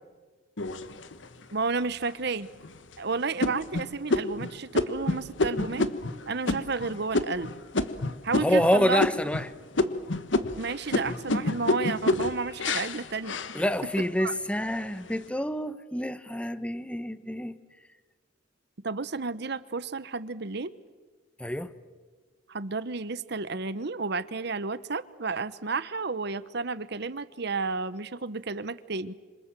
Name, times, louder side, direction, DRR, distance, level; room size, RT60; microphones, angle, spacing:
sound 1, 0.6-1.4 2.0-2.1 2.6-2.9 3.4-8.7 9.0-9.5 9.8-14.1 14.6-15.1, left 2 dB, 75° left, 1.3 m, -29 dB
voice 1, 1.5-2.5 3.0-5.9 6.3-7.5 8.2-9.0 10.5-13.4 14.2-14.3 18.8-20.7 22.5-29.1, right 4 dB, 60° right, 1.0 m, -31 dB
voice 2, 8.3-9.5 13.5-17.6 21.4-21.7, equal, 5° left, 1.0 m, -27 dB
27.0 x 26.5 x 7.5 m
head